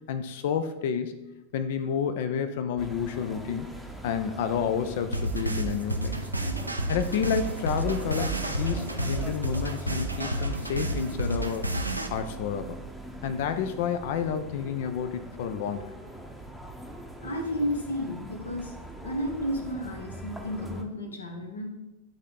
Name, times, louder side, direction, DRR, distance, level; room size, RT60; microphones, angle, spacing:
voice 1, 0.1-1.2 1.5-3.7 4.0-6.2 6.9-11.7 12.1-12.8 13.2-15.9, left 7 dB, 50° left, 10 dB, 0.5 m, -30 dB
sound 1, 2.8-20.8, right 1 dB, ahead, 0.8 m, -41 dB
sound 2, 5.1-12.1, right 1 dB, 85° right, 0.5 m, -30 dB
voice 2, 17.2-18.7 19.0-21.7, equal, 75° left, 3 dB, 1.1 m, -32 dB
10.5 x 3.6 x 3.7 m, 0.98 s
figure-of-eight pair, 90°, 0 cm